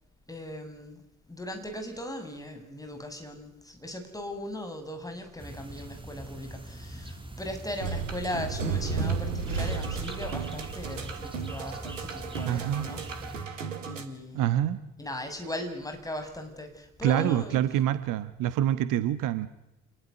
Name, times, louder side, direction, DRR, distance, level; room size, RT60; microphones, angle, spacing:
voice 1, 0.3-1.0 1.3-13.0 13.5-14.5 15.0-17.8, left 1 dB, 10° left, 5 dB, 6.9 m, -38 dB
sound 1, 5.4-13.5, right 1 dB, 15° right, 4.7 m, -43 dB
sound 2, 7.8-14.0, right 5 dB, 80° right, 1.9 m, -33 dB
voice 2, 12.4-12.9 14.3-14.8 17.0-19.5, right 11 dB, 55° right, 14 dB, 1.3 m, -26 dB
27.0 x 20.5 x 9.7 m, 0.89 s
figure-of-eight pair, 45°, 38 cm